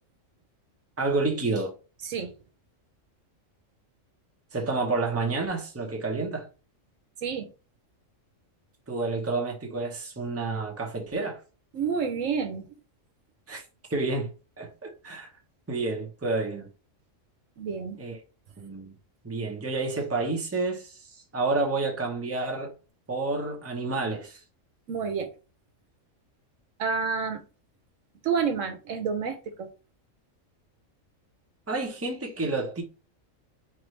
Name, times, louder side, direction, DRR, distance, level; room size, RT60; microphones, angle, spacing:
voice 1, 1.0-1.7 4.5-6.5 8.9-11.4 13.5-13.6 13.9-14.3 14.6-15.3 15.7-16.7 18.0-18.2 18.6-18.9 19.2-22.7 23.1-24.4 31.7-32.8, right 3 dB, 15° right, 0.8 m, -29 dB
voice 2, 11.7-12.7 17.6-18.0 24.9-25.3 26.8-27.4 28.2-29.7, right 6 dB, 75° right, 1.1 m, -29 dB
4.6 x 2.6 x 3.2 m
omnidirectional pair, 1.4 m